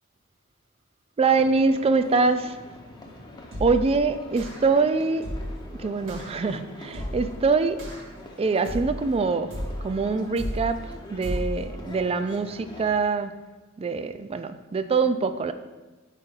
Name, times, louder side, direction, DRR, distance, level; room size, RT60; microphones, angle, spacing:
voice 1, 1.2-2.6 3.6-5.3 5.8-7.8 8.4-9.5 9.8-13.3 13.8-15.5, right 4 dB, 30° right, 10 dB, 0.3 m, -24 dB
sound 1, 1.3-13.0, left 1 dB, 20° left, 0.6 m, -45 dB
sound 2, 3.5-3.9 4.4-4.8 5.2-5.6 6.1-6.4 6.9-7.4 7.8-8.2 8.6-9.1 9.5-9.9 10.4-10.8 11.2-11.6, equal, 75° right, 1.9 m, -33 dB
4.8 x 4.2 x 5.2 m, 1.2 s
head